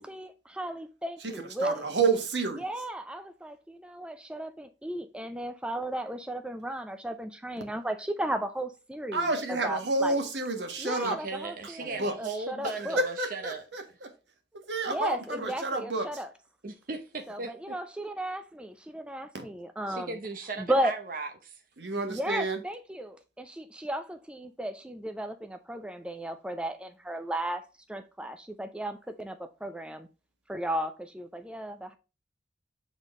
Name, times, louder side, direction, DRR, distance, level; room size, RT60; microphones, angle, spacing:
voice 1, 0.0-1.8 2.6-10.2 10.8-13.0 14.9-16.3 17.3-21.0 22.1-27.6 27.9-30.1 30.5-32.0, right 1 dB, 5° right, 0.4 m, -35 dB
voice 2, 1.6-2.7 9.1-11.2 12.0-12.1 13.0-14.1 14.5-16.1 21.8-22.6, right 3 dB, 80° right, 1.5 m, -29 dB
voice 3, 10.9-13.6 16.6-17.8 19.9-21.6, right 3 dB, 50° right, 0.7 m, -37 dB
7.0 x 4.1 x 3.7 m
head